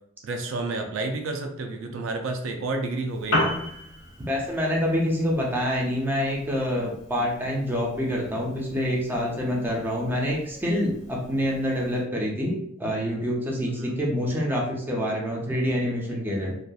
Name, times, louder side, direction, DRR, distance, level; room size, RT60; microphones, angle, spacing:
voice 1, 0.2-3.5 13.6-14.0, right 2 dB, 75° right, 4 dB, 0.4 m, -30 dB
Piano, 3.1-12.0, left 1 dB, 75° left, 0.8 m, -36 dB
voice 2, 4.3-16.5, equal, 10° right, -3 dB, 0.5 m, -26 dB
2.7 x 2.3 x 2.3 m, 0.72 s
head